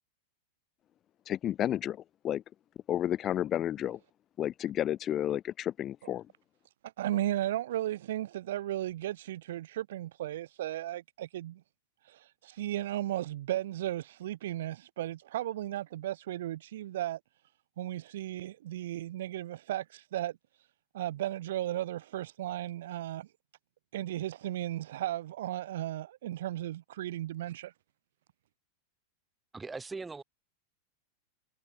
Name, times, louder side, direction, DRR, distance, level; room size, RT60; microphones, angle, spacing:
voice 1, 1.3-2.0 2.2-2.4 2.9-4.0 4.4-6.2, left 11 dB, 30° left, 0.4 m, -31 dB
voice 2, 6.8-11.6 12.0-17.2 17.8-20.3 20.9-23.3 23.9-27.7, right 13 dB, 55° right, 0.3 m, -35 dB
voice 3, 29.5-30.2, right 4 dB, 10° right, 5.4 m, -40 dB
figure-of-eight pair, 90°, 0 cm